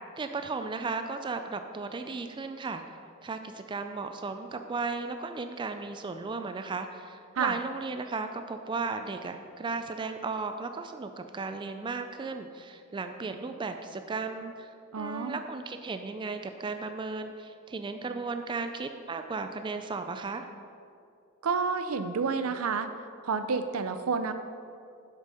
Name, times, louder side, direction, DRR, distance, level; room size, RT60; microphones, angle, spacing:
voice 1, 0.2-2.8 3.2-20.4, right 4 dB, 20° right, 7 dB, 0.3 m, -35 dB
voice 2, 14.9-15.4 21.4-22.9 23.2-24.3, right 5 dB, 75° right, 10 dB, 0.5 m, -29 dB
7.4 x 6.1 x 5.6 m, 2.4 s
head